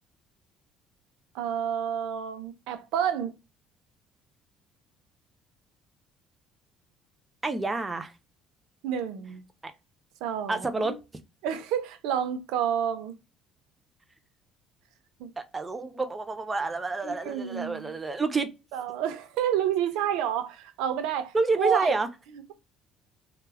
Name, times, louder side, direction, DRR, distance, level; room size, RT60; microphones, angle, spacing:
voice 1, 1.3-3.3 8.8-9.4 10.2-11.0 11.4-13.1 15.2-15.3 17.0-18.0 18.7-22.0, right 9 dB, 85° right, 0.4 m, -29 dB
voice 2, 7.4-8.1 9.6-9.7 10.5-10.9 15.4-18.5 21.3-22.1, right 3 dB, 15° right, 0.3 m, -28 dB
2.2 x 2.0 x 3.1 m
cardioid pair, 160°, 0 cm